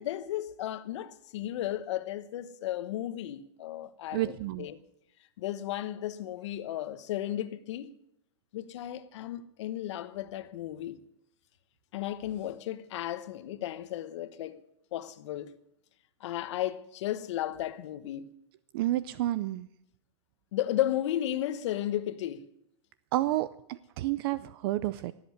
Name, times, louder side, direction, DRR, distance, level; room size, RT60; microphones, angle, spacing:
voice 1, 0.0-4.8 5.4-7.9 8.5-11.0 11.9-14.6 14.9-15.6 16.2-18.3 20.5-22.4, left 12 dB, 70° left, 1.1 m, -34 dB
voice 2, 4.1-4.7 18.7-19.7 23.1-23.5 24.0-25.1, right 15 dB, 50° right, 0.5 m, -29 dB
18.0 x 7.9 x 9.6 m
supercardioid pair, 155°, 16 cm